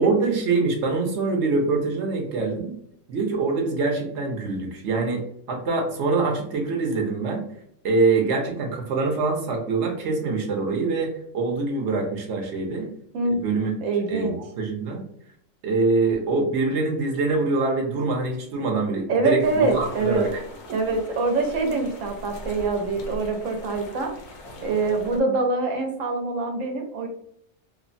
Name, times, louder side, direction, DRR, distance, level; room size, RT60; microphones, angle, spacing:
voice 1, 0.0-2.7 3.1-5.2 5.5-7.4 7.8-12.9 13.3-13.7 14.1-15.0 15.6-20.4, right 3 dB, 65° right, 2 dB, 0.9 m, -24 dB
voice 2, 13.1-14.4 19.1-20.3 20.7-24.1 24.6-27.1, right 3 dB, 90° right, 4 dB, 1.0 m, -25 dB
sound 1, 19.4-25.2, left 1 dB, 65° left, 0.8 m, -41 dB
3.1 x 2.0 x 2.5 m, 0.71 s
omnidirectional pair, 1.3 m